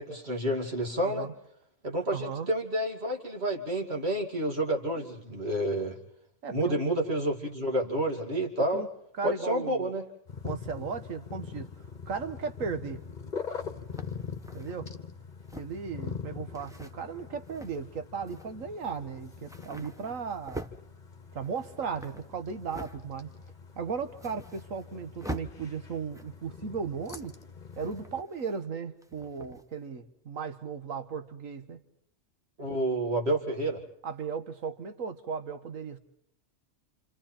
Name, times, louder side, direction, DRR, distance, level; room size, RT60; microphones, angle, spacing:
voice 1, 0.0-1.3 1.8-6.0 6.5-8.8 9.2-10.0 32.6-33.8, right 1 dB, 50° right, 2 dB, 2.7 m, -29 dB
voice 2, 2.1-2.5 6.4-6.8 8.7-8.9 9.1-9.9 10.4-13.0 14.5-14.9 15.5-20.6 21.3-23.3 23.7-27.3 27.8-31.8 34.0-36.0, right 5 dB, 85° right, 9 dB, 1.7 m, -36 dB
sound 1, 10.3-28.2, left 6 dB, 35° left, 1.4 m, -43 dB
sound 2, 13.0-13.1 13.9-14.8 15.4-15.9 16.5-16.9 17.4-17.9 18.3-18.5 18.8-19.0 19.2-20.8 21.3-23.0 23.4-23.5 23.9-24.9 25.2-25.5 26.0-26.5 27.0-27.4 27.7-28.7 29.0-29.7, right 1 dB, 5° right, 1.0 m, -44 dB
29.0 x 27.5 x 4.4 m, 0.71 s
omnidirectional pair, 1.3 m